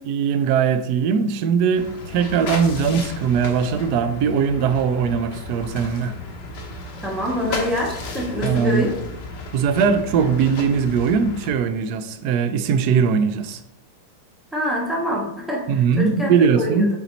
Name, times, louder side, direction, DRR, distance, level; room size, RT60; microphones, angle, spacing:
voice 1, 0.1-6.1 8.4-8.9 9.5-13.6 15.7-16.9, right 6 dB, 80° right, 9 dB, 0.9 m, -20 dB
sound 1, 1.7-11.5, left 2 dB, 60° left, 1.5 m, -34 dB
voice 2, 7.0-9.0 14.5-16.9, equal, ahead, -3 dB, 0.8 m, -25 dB
7.0 x 4.3 x 4.0 m, 0.84 s
omnidirectional pair, 2.2 m